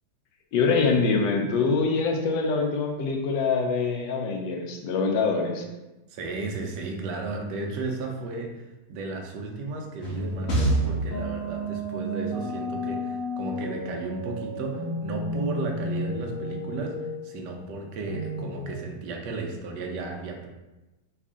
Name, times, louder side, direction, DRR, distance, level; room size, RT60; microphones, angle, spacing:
voice 1, 0.5-5.7, left 4 dB, 85° left, 2 dB, 1.3 m, -24 dB
voice 2, 6.1-20.5, right 3 dB, 75° right, 2 dB, 1.2 m, -34 dB
sound 1, 10.0-18.8, right 1 dB, 65° left, 0.9 m, -30 dB
3.5 x 2.4 x 3.6 m, 1.0 s
omnidirectional pair, 1.9 m